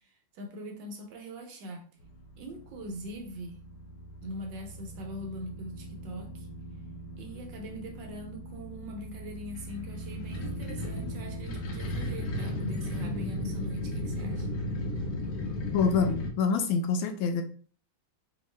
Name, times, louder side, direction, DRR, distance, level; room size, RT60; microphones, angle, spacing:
voice 1, 0.3-1.9 2.4-3.6 4.2-6.5 7.2-14.5, equal, 70° right, 1.3 m, -41 dB
sound 1, 2.0-16.3, left 1 dB, 60° left, 1.1 m, -36 dB
voice 2, 15.7-17.4, left 5 dB, 80° left, 1.3 m, -26 dB
4.5 x 2.9 x 3.1 m
omnidirectional pair, 2.3 m